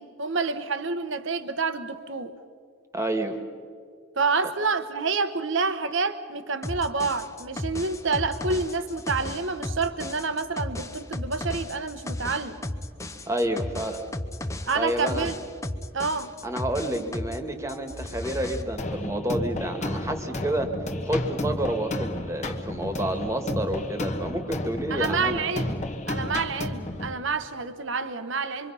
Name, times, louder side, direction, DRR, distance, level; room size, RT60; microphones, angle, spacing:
voice 1, 0.0-2.3 4.2-12.6 14.7-15.4 15.9-16.3 24.9-28.7, right 4 dB, 65° right, 10 dB, 1.1 m, -28 dB
voice 2, 2.9-3.4 13.3-14.0 14.7-15.3 16.4-20.7 21.0-25.4, right 1 dB, 15° right, 6 dB, 1.6 m, -29 dB
sound 1, 6.6-17.4 17.7-18.6, left 1 dB, 15° left, 0.8 m, -34 dB
sound 2, 18.8-27.1, left 1 dB, 35° left, 1.3 m, -32 dB
26.0 x 24.0 x 5.6 m, 2.3 s
head